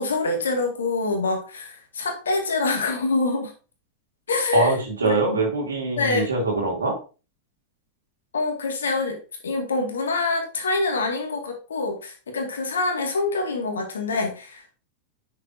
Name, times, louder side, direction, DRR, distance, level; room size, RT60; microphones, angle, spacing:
voice 1, 0.0-3.5 4.3-4.8 5.0-5.4 5.9-6.3 8.3-14.7, left 3 dB, 70° left, 4 dB, 2.1 m, -26 dB
voice 2, 4.5-7.0, right 3 dB, 75° right, 0 dB, 2.9 m, -23 dB
9.5 x 6.5 x 2.8 m, 0.34 s
figure-of-eight pair, 90°, 0 cm